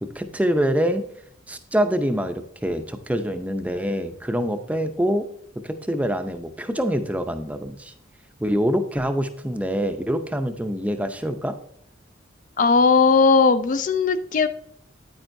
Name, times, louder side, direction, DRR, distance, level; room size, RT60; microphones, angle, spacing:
voice 1, 0.0-1.0 1.5-5.3 5.6-7.9 8.4-11.5, equal, 10° right, 7 dB, 0.5 m, -25 dB
voice 2, 12.6-14.5, left 4 dB, 45° left, 11 dB, 0.4 m, -17 dB
9.2 x 8.9 x 2.6 m, 0.70 s
head